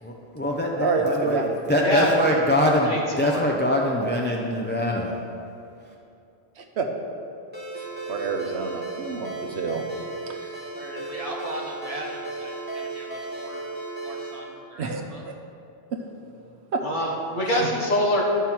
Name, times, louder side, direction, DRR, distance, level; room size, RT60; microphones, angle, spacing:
voice 1, 0.0-1.4 1.7-5.2, equal, 10° left, -1 dB, 0.5 m, -23 dB
voice 2, 0.8-1.7 6.6-6.9 7.8-9.8 10.3-10.6 14.8-15.0 15.9-16.0 16.7-16.8 17.5-17.7, right 4 dB, 75° right, 4 dB, 1.1 m, -28 dB
voice 3, 1.8-2.1 2.8-3.4 16.8-18.2, left 1 dB, 50° left, -3 dB, 1.5 m, -25 dB
Ringtone, 7.5-14.4, right 3 dB, 10° right, 1.6 m, -35 dB
voice 4, 10.6-13.6 14.0-15.2, right 1 dB, 35° right, -2 dB, 1.3 m, -38 dB
11.5 x 5.5 x 4.5 m, 2.7 s
omnidirectional pair, 1.1 m